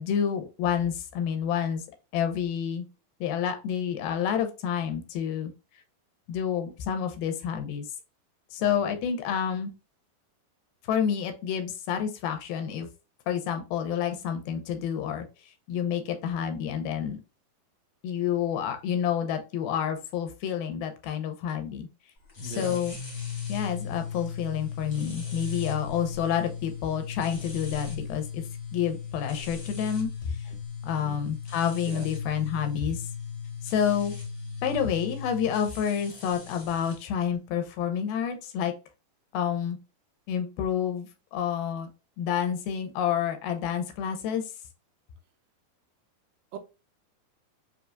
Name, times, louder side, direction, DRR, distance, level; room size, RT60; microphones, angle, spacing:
voice 1, 0.0-1.8 2.1-2.9 3.2-5.5 6.3-7.9 8.5-9.7 10.9-12.9 13.3-15.3 15.7-17.2 18.0-21.9 22.4-23.0 23.5-28.4 28.7-30.1 30.8-33.0 33.6-34.1 34.6-38.7 39.3-39.8 40.3-41.9 42.2-44.4, left 8 dB, 80° left, 6 dB, 2.5 m, -29 dB
voice 2, 8.7-9.0 22.4-22.9 30.5-30.6 31.0-31.2 31.9-32.1 46.5-46.6, right 6 dB, 85° right, 6 dB, 2.4 m, -41 dB
sound 1, 22.3-37.0, left 7 dB, 45° left, 1.0 m, -37 dB
6.2 x 2.8 x 2.3 m, 0.30 s
omnidirectional pair, 4.3 m